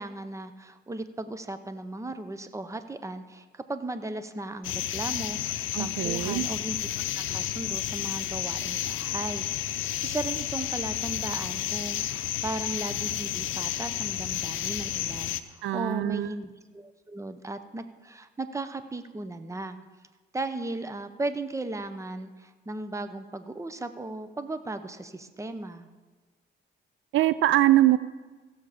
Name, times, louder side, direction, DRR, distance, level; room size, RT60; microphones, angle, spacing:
voice 1, 0.0-6.9 7.1-19.8 20.3-25.9, right 2 dB, 15° right, 10 dB, 0.7 m, -36 dB
sound 1, 4.6-15.4, left 12 dB, 85° left, 0.6 m, -31 dB
voice 2, 5.7-6.5 15.6-16.3 27.1-28.0, right 14 dB, 75° right, 15 dB, 0.4 m, -23 dB
16.0 x 7.1 x 5.0 m, 1.3 s
cardioid pair, 90°, 20 cm